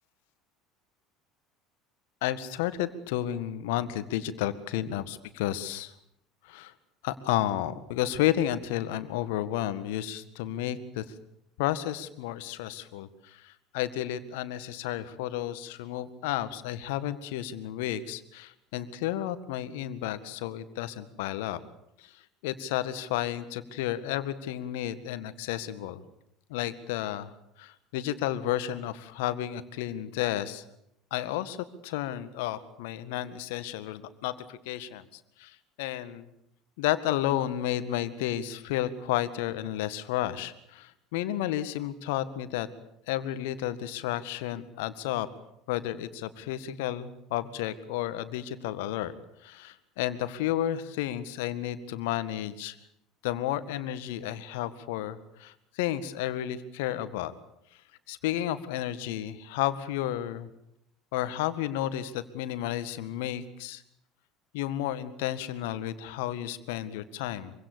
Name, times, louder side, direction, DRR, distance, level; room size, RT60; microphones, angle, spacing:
voice 1, 2.2-5.9 6.4-6.7 7.0-11.0 11.6-21.6 22.0-22.1 22.4-26.0 26.5-27.3 27.6-30.6 31.1-31.6 31.8-36.3 36.8-42.7 43.1-45.3 45.7-49.1 49.4-52.8 53.2-57.3 58.1-60.5 61.1-63.8 64.5-67.5, left 12 dB, 65° left, 14 dB, 1.8 m, -32 dB
25.0 x 24.5 x 6.9 m, 0.78 s
figure-of-eight pair, 65°, 0 cm